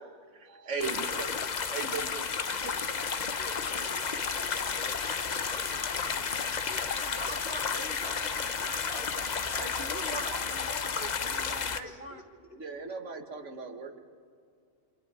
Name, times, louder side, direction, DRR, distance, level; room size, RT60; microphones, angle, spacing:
voice 1, 0.0-2.8 12.5-14.0, right 4 dB, 80° right, 5 dB, 1.8 m, -39 dB
sound 1, 0.8-11.8, left 6 dB, 40° left, 0.8 m, -32 dB
voice 2, 0.8-1.9 2.3-7.3 8.0-8.2 8.9-9.2 9.5-10.3 11.8-12.2 13.5-13.6, left 2 dB, 25° left, 1 dB, 2.3 m, -49 dB
sound 2, 2.9-8.1, left 2 dB, 5° right, 2.9 m, -50 dB
voice 3, 6.9-9.0 9.6-12.2, right 2 dB, 55° right, 5 dB, 1.6 m, -43 dB
27.5 x 26.0 x 4.9 m, 2.3 s
omnidirectional pair, 1.2 m